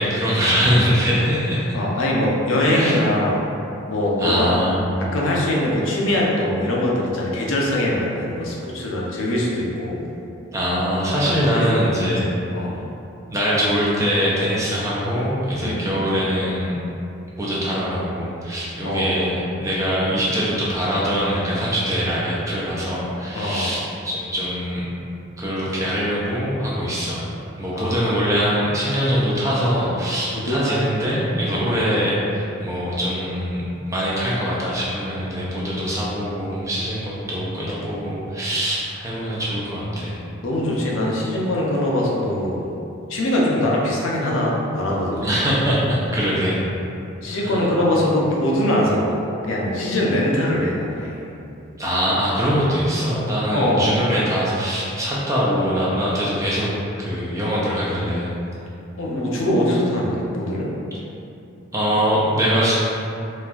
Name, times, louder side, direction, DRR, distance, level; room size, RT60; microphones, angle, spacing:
voice 1, 0.0-1.7 2.6-3.0 4.2-4.8 10.5-12.3 13.3-16.8 17.4-24.8 25.4-27.2 27.6-33.6 33.9-40.2 45.2-46.6 47.3-47.6 51.8-56.7 57.0-58.3 61.7-62.7, equal, 15° right, -7 dB, 0.4 m, -22 dB
voice 2, 1.7-3.4 3.9-4.5 5.1-10.0 11.3-12.1 12.5-12.8 15.6-16.0 18.8-19.1 23.3-23.8 27.7-28.1 30.3-30.6 31.5-31.8 40.4-42.7 43.1-45.3 47.2-51.2 53.5-53.9 59.0-60.7, left 1 dB, 65° left, -3 dB, 0.5 m, -22 dB
4.2 x 2.3 x 2.3 m, 2.7 s
head